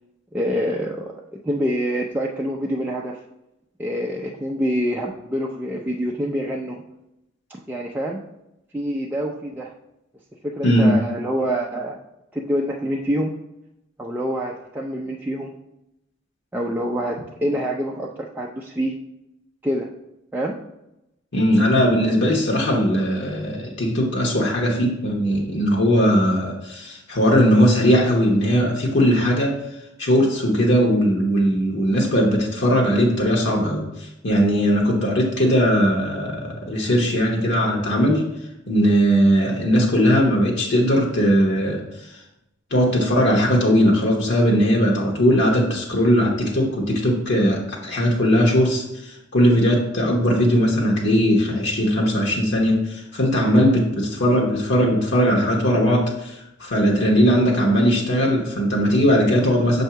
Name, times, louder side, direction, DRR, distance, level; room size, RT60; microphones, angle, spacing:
voice 1, 0.3-3.2 3.8-6.8 7.5-8.2 8.7-9.7 10.4-12.0 12.3-13.3 14.0-15.5 16.5-19.0 19.6-19.9 20.3-20.6, equal, 10° right, -2 dB, 0.4 m, -26 dB
voice 2, 10.6-11.0 21.3-29.6 30.0-38.2 38.7-41.8 42.1-42.2 42.7-56.3 56.6-59.8, equal, 60° left, -1 dB, 1.1 m, -19 dB
6.6 x 2.7 x 5.6 m, 0.86 s
head